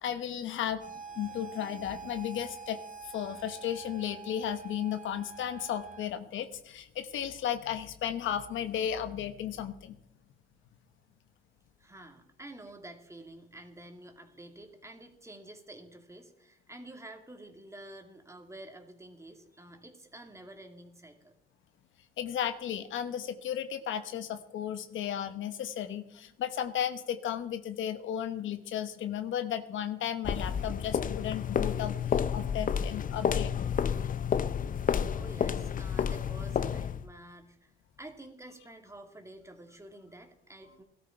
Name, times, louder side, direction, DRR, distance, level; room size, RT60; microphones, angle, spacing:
voice 1, 0.0-2.8 3.1-10.0 22.2-33.5, left 9 dB, 75° left, 10 dB, 1.1 m, -34 dB
sound 1, 0.8-6.1, right 5 dB, 40° right, 1.8 m, -46 dB
voice 2, 11.8-21.3 35.1-37.7 38.0-40.8, right 1 dB, 15° right, 4 dB, 2.3 m, -49 dB
sound 2, 30.2-37.1, left 7 dB, 45° left, 0.7 m, -30 dB
17.5 x 13.0 x 4.5 m, 0.75 s
cardioid pair, 90°, 20 cm